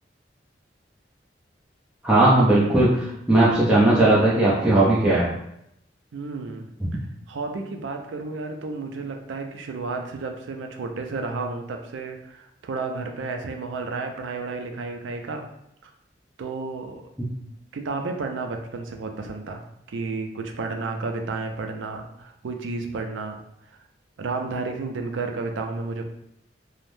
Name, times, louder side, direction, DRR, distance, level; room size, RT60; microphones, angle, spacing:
voice 1, 2.0-5.3, right 2 dB, 5° right, -10 dB, 0.5 m, -18 dB
voice 2, 6.1-6.7 7.3-15.5 16.4-17.0 17.7-19.6 19.9-23.4 24.2-26.0, right 3 dB, 90° right, 4 dB, 0.4 m, -32 dB
3.2 x 2.0 x 2.6 m, 0.78 s
head